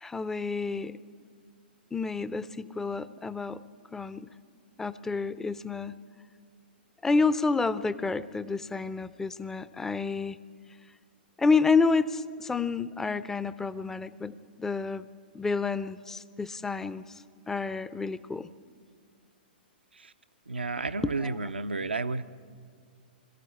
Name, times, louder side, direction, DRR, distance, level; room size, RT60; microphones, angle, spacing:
voice 1, 0.0-1.0 1.9-3.6 3.9-4.3 4.8-6.0 7.0-10.4 11.4-15.1 15.3-17.0 17.5-18.5 21.0-21.4, left 4 dB, 10° left, 16 dB, 0.5 m, -29 dB
voice 2, 20.5-22.2, right 3 dB, 80° right, 11 dB, 0.6 m, -31 dB
21.5 x 14.5 x 8.4 m, 2.1 s
figure-of-eight pair, 110°, 5 cm